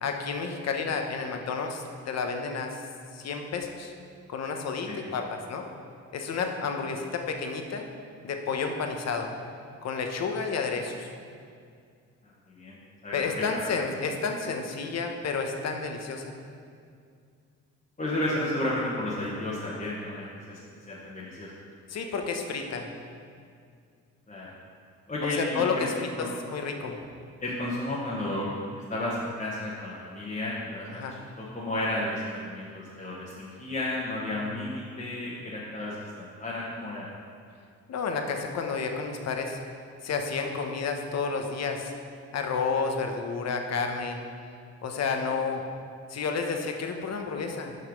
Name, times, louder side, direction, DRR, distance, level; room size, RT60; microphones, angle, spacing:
voice 1, 0.0-2.9 3.1-3.9 4.3-5.6 6.1-7.9 8.2-9.3 9.8-11.1 13.1-16.3 21.9-22.9 25.2-25.9 26.2-27.0 30.9-31.2 37.9-39.6 40.0-41.9 42.3-44.2 44.8-45.6 46.1-47.8, left 5 dB, 60° left, 4 dB, 1.1 m, -31 dB
voice 2, 13.0-13.7 18.0-20.6 20.9-21.5 24.3-24.5 25.1-25.8 26.1-26.3 27.4-31.0 31.4-37.1, left 1 dB, 25° left, -7 dB, 1.4 m, -32 dB
7.8 x 5.7 x 5.3 m, 2.3 s
cardioid pair, 90°, 30 cm